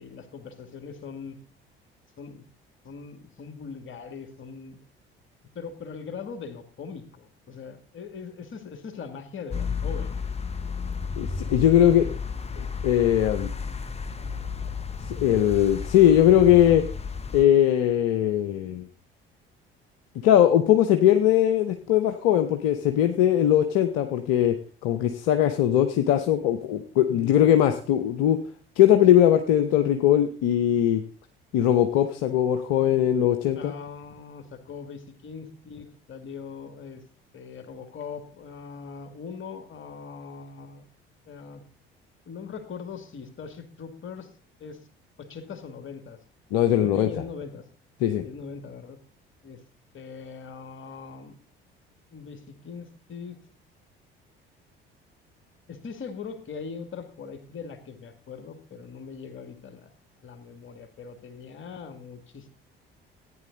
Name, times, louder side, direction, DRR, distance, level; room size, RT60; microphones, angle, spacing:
voice 1, 0.0-1.4 2.2-2.4 2.8-4.8 5.5-10.2 27.1-27.4 33.6-37.0 37.3-40.8 41.3-41.6 42.3-44.3 44.6-44.9 45.2-46.2 46.8-47.7 48.2-49.0 49.4-49.6 49.9-51.4 52.1-53.4 55.7-62.5, left 5 dB, 40° left, 8 dB, 2.2 m, -41 dB
sound 1, 9.5-17.4, left 5 dB, 20° left, 1.0 m, -32 dB
voice 2, 11.2-12.1 12.6-13.5 15.1-16.8 17.3-18.9 20.2-24.5 24.8-28.4 28.8-31.0 31.5-33.7 46.5-47.1 48.0-48.2, left 11 dB, 60° left, 7 dB, 0.9 m, -20 dB
14.0 x 9.5 x 4.0 m, 0.40 s
figure-of-eight pair, 55°, 29 cm